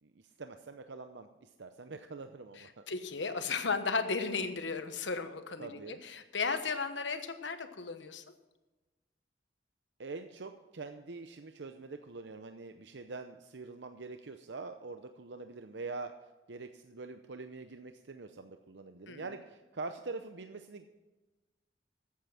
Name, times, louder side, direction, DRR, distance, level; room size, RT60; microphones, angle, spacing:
voice 1, 0.0-2.8 5.6-6.0 10.0-16.1 16.5-20.9, right 3 dB, 75° right, 7 dB, 0.7 m, -44 dB
voice 2, 2.9-8.2 19.1-19.3, left 4 dB, 90° left, 9 dB, 1.2 m, -35 dB
14.0 x 8.6 x 5.7 m, 1.1 s
head